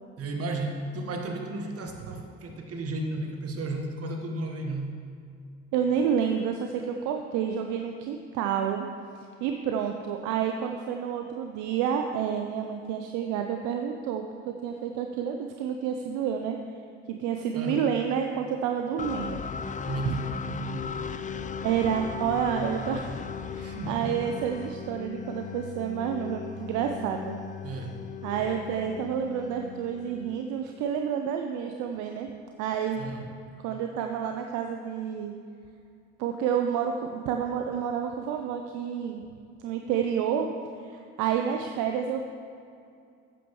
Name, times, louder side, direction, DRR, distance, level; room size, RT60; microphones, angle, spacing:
voice 1, 0.2-4.9 17.5-17.9 19.8-20.9 23.6-24.2 27.6-28.0 32.9-33.2, right 2 dB, 50° right, 3 dB, 1.6 m, -34 dB
voice 2, 5.7-8.9 9.4-16.6 17.2-19.5 20.1-20.2 21.6-23.2 23.5-27.4 28.2-32.3 32.6-33.0 33.6-35.3 36.2-39.2 39.6-40.5 40.8-42.2, right 8 dB, 70° right, 4 dB, 0.7 m, -29 dB
sound 1, 19.0-30.8, left 6 dB, 25° left, 0.5 m, -37 dB
12.0 x 8.8 x 3.2 m, 2.4 s
hypercardioid pair, 60°, 31 cm